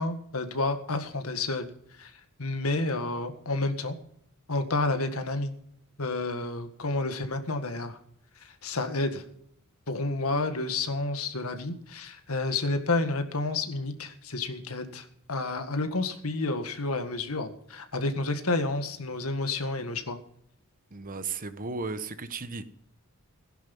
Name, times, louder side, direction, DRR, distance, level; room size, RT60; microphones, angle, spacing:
voice 1, 0.0-1.7 2.0-2.1 2.4-4.0 4.5-5.5 6.0-8.0 8.6-9.2 9.9-20.2, left 2 dB, 85° left, 7 dB, 1.8 m, -30 dB
voice 2, 20.9-22.7, right 4 dB, 40° right, 11 dB, 1.1 m, -35 dB
16.5 x 10.5 x 5.4 m, 0.70 s
head